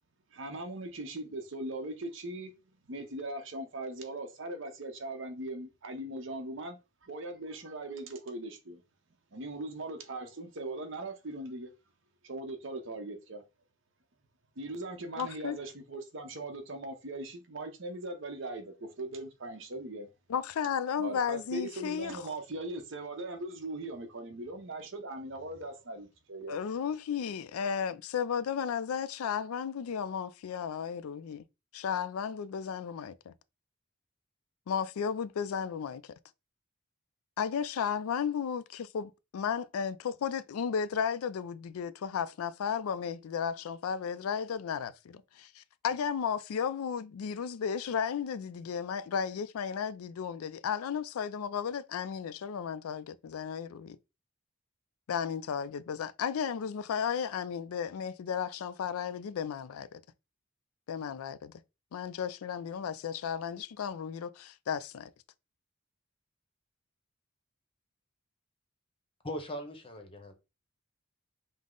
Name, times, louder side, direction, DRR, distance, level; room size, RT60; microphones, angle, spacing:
voice 1, 0.3-2.5 2.9-8.8 9.3-11.7 12.2-13.4 14.6-20.1 21.0-26.6, right 2 dB, 60° right, 0.8 m, -40 dB
voice 2, 15.2-15.6 20.3-22.3 26.5-31.4 31.7-33.3 34.7-36.1 37.4-54.0 55.1-60.0 60.9-61.5 61.9-65.1, left 7 dB, 90° left, 0.4 m, -34 dB
voice 3, 69.2-70.3, equal, 25° left, 0.8 m, -39 dB
5.3 x 2.0 x 3.7 m
head